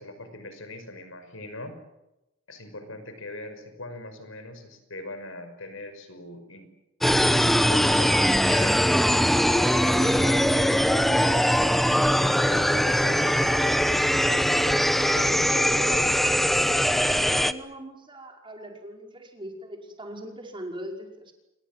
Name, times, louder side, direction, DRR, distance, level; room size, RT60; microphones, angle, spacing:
voice 1, 0.0-1.8 2.5-6.7 7.1-8.8 9.7-16.2, left 2 dB, 80° left, 9 dB, 5.7 m, -40 dB
sound 1, 7.0-17.5, equal, ahead, 0.9 m, -21 dB
voice 2, 16.9-21.3, right 1 dB, 25° right, 2 dB, 5.5 m, -40 dB
30.0 x 24.0 x 7.6 m, 0.95 s
head